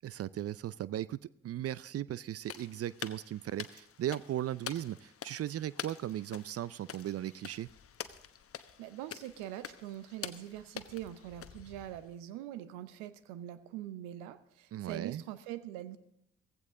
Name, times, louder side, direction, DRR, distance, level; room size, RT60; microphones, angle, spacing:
voice 1, 0.0-7.7 14.7-15.2, right 12 dB, 50° right, 20 dB, 0.5 m, -37 dB
sound 1, 2.4-12.2, left 8 dB, 50° left, 1.0 m, -47 dB
voice 2, 8.8-16.0, right 12 dB, 85° right, 13 dB, 0.8 m, -43 dB
16.0 x 15.5 x 3.7 m, 0.80 s
hypercardioid pair, 45°, 30 cm